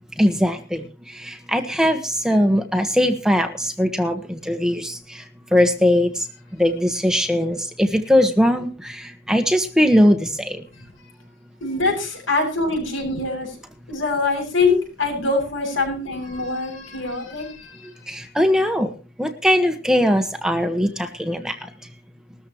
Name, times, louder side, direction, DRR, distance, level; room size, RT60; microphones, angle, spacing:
voice 1, 0.2-5.2 5.5-6.3 6.5-10.6 17.8-18.9 19.2-21.7, equal, 5° right, 6 dB, 1.5 m, -20 dB
voice 2, 11.6-13.5 13.9-17.9, left 3 dB, 65° left, 3 dB, 7.6 m, -24 dB
20.5 x 13.5 x 3.1 m, 0.34 s
head